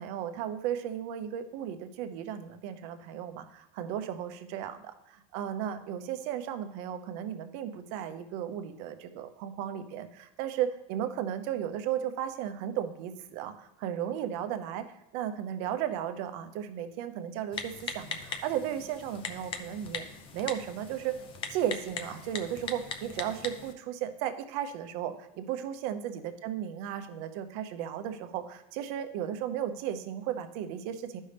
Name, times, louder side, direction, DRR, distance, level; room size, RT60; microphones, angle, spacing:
voice 1, 0.0-14.8 15.1-20.0 20.3-21.1 21.5-31.2, right 10 dB, 60° right, 9 dB, 0.8 m, -35 dB
Typing, 17.5-23.7, left 5 dB, 30° left, 0.6 m, -40 dB
12.0 x 5.4 x 3.4 m, 0.87 s
cardioid pair, 165°, 18 cm